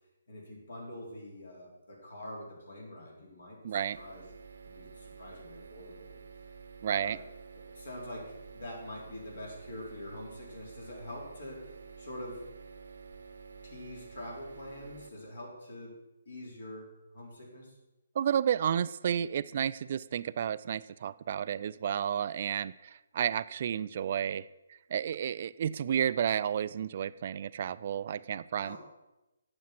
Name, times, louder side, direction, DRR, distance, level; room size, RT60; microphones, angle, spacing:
voice 1, 0.3-4.2 4.7-6.1 7.0-7.2 7.7-11.7 12.0-12.4 13.6-16.0 16.3-17.7 28.6-28.8, left 1 dB, 70° left, -2 dB, 4.3 m, -45 dB
voice 2, 3.6-4.0 6.8-7.2 18.2-24.4 24.9-28.8, right 9 dB, 45° right, 16 dB, 0.3 m, -31 dB
sound 1, 3.9-15.1, right 5 dB, 65° right, 0.8 m, -50 dB
9.6 x 6.9 x 6.0 m, 1.0 s
figure-of-eight pair, 145°, 0 cm